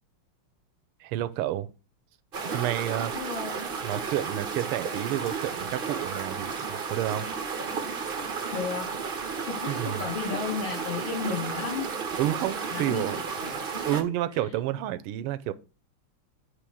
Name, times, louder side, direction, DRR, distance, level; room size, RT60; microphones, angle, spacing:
voice 1, 1.0-1.7 2.5-3.1 3.8-7.3 9.7-10.1 12.2-13.2 13.8-15.5, right 13 dB, 85° right, 1.5 m, -30 dB
sound 1, 2.3-14.0, right 5 dB, 60° right, 0.5 m, -33 dB
voice 2, 3.1-3.7 8.5-9.0 9.5-11.9 12.7-14.0, left 5 dB, 60° left, 3.1 m, -34 dB
8.3 x 3.2 x 6.2 m
omnidirectional pair, 2.4 m